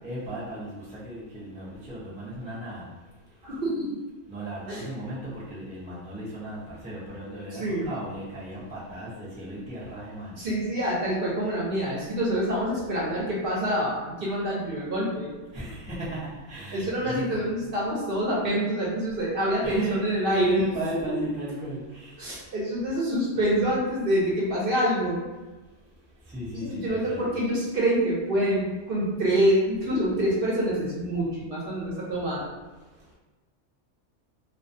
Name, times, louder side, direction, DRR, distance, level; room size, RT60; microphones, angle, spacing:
voice 1, 0.0-2.9 4.3-10.4 15.5-17.4 19.6-20.1 20.3-22.1 26.3-27.2, right 1 dB, 10° right, -8 dB, 0.4 m, -36 dB
voice 2, 3.4-3.9 4.7-4.8 7.6-7.9 10.4-15.3 16.7-20.6 21.0-21.2 22.2-25.2 26.5-32.5, right 1 dB, 55° right, -5 dB, 0.7 m, -26 dB
2.3 x 2.3 x 2.5 m, 1.2 s
omnidirectional pair, 1.3 m